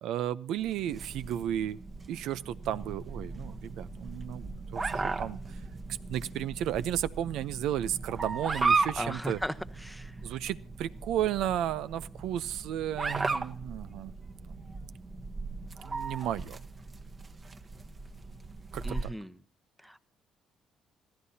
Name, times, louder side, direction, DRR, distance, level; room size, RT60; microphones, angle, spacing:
voice 1, 0.0-1.8 2.1-5.4 6.1-9.4 10.2-14.1 14.5-14.7 15.8-16.6 18.7-19.0, right 11 dB, 80° right, 14 dB, 0.6 m, -33 dB
sound 1, 0.6-19.0, right 3 dB, 25° right, 1.1 m, -36 dB
voice 2, 9.0-9.5 9.8-10.1 18.8-19.3 19.8-20.0, equal, ahead, 10 dB, 0.8 m, -36 dB
25.5 x 15.0 x 2.8 m, 0.38 s
cardioid pair, 115°, 0 cm